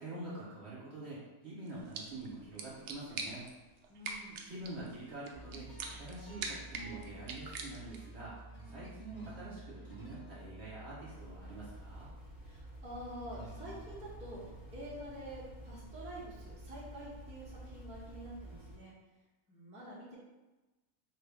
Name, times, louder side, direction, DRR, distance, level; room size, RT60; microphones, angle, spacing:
voice 1, 0.0-3.5 4.4-8.3 8.6-12.1, right 2 dB, 45° right, -8 dB, 1.2 m, -46 dB
sound 1, 1.7-8.2, right 4 dB, 85° right, 0.6 m, -45 dB
voice 2, 3.9-4.4 12.4-18.9 19.5-20.2, right 1 dB, 5° right, -8 dB, 0.8 m, -47 dB
sound 2, 5.3-18.9, right 2 dB, 65° left, 2.0 m, -51 dB
sound 3, 11.1-18.8, equal, 45° left, 1.9 m, -54 dB
4.2 x 2.6 x 3.5 m, 1.1 s
omnidirectional pair, 1.7 m